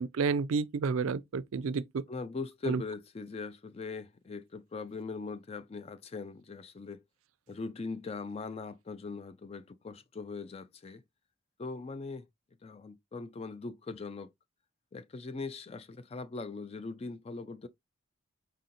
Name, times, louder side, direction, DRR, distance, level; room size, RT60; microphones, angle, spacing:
voice 1, 0.0-2.0 2.6-2.8, right 5 dB, 80° right, 0.4 m, -30 dB
voice 2, 2.1-7.0 7.5-11.0 11.6-12.2 12.6-14.3 14.9-17.7, left 4 dB, 30° left, 0.3 m, -40 dB
4.2 x 3.7 x 2.5 m
head